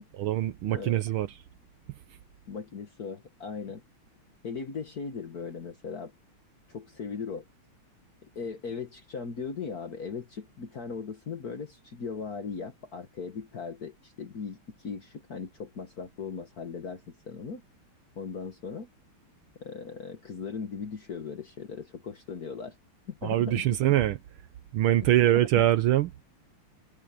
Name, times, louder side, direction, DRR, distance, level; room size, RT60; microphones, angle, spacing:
voice 1, 0.2-1.4 23.2-24.2 24.7-26.2, right 13 dB, 80° right, 1.7 m, -24 dB
voice 2, 0.7-1.0 2.5-3.8 4.4-6.1 6.7-7.5 8.4-17.6 18.2-18.9 19.6-22.8 23.1-23.6 25.2-25.7, left 5 dB, 50° left, 1.8 m, -38 dB
omnidirectional pair, 2.3 m